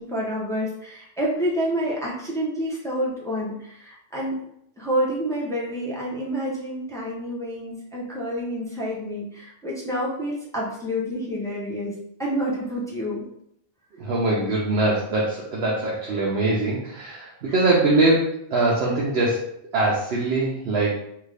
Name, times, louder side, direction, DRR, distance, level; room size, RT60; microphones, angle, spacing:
voice 1, 0.0-4.3 4.8-11.9 12.2-13.3, equal, 5° left, -5 dB, 0.5 m, -28 dB
voice 2, 14.0-19.4 19.7-20.9, right 2 dB, 60° right, -4 dB, 0.9 m, -22 dB
3.5 x 2.4 x 3.3 m, 0.74 s
omnidirectional pair, 1.3 m